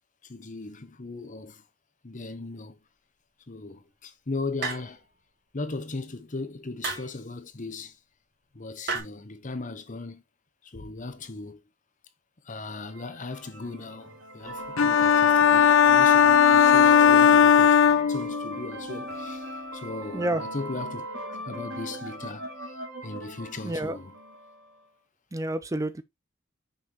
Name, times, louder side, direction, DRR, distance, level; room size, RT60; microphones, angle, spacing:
voice 1, 0.2-1.6 2.0-2.8 3.5-5.0 5.5-8.0 8.5-10.2 10.6-11.6 12.4-17.8 18.1-24.1, left 3 dB, 40° left, 0.9 m, -38 dB
sound 1, 4.6-5.2 6.8-7.2 8.9-9.0, right 4 dB, 55° right, 2.8 m, -32 dB
sound 2, 12.9-24.7, equal, 80° right, 3.2 m, -37 dB
sound 3, 14.8-18.7, left 8 dB, 65° left, 0.5 m, -18 dB
voice 2, 23.6-24.0 25.3-26.0, right 1 dB, 15° right, 0.4 m, -29 dB
6.5 x 5.4 x 2.9 m
head